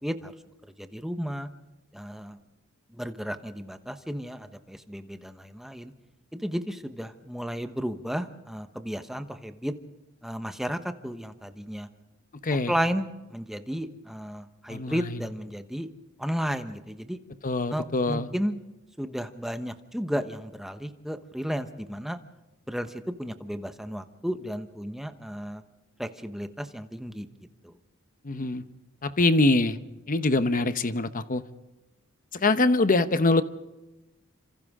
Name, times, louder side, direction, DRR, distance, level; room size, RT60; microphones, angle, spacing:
voice 1, 0.0-0.3 0.8-1.5 1.9-2.4 2.9-5.9 6.3-9.7 10.2-11.9 12.7-15.9 16.2-17.2 17.7-18.6 19.0-22.2 22.7-25.6 26.0-27.3 27.6-27.7, equal, ahead, 8 dB, 1.1 m, -33 dB
voice 2, 14.7-15.2 17.4-18.3 28.2-28.6 29.0-29.8 30.1-31.4 32.3-33.4, left 2 dB, 40° left, 11 dB, 1.0 m, -24 dB
29.0 x 26.5 x 3.7 m, 1.0 s
head